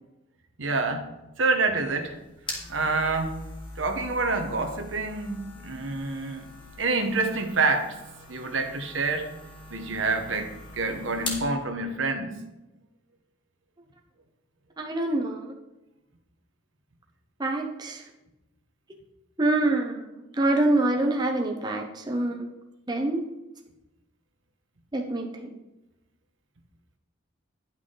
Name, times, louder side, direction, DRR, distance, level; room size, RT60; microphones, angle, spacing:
voice 1, 0.6-1.1 1.4-2.1 2.7-3.3 3.8-6.4 6.8-8.0 8.3-9.3 9.7-12.3, right 3 dB, 80° right, 4 dB, 1.1 m, -27 dB
sound 1, 1.9-11.5, left 2 dB, 25° left, 1.7 m, -42 dB
voice 2, 14.8-15.5 17.4-18.0 19.4-22.5 22.9-23.2 24.9-25.5, right 2 dB, 20° right, 2 dB, 0.7 m, -26 dB
9.9 x 5.9 x 3.8 m, 0.98 s
head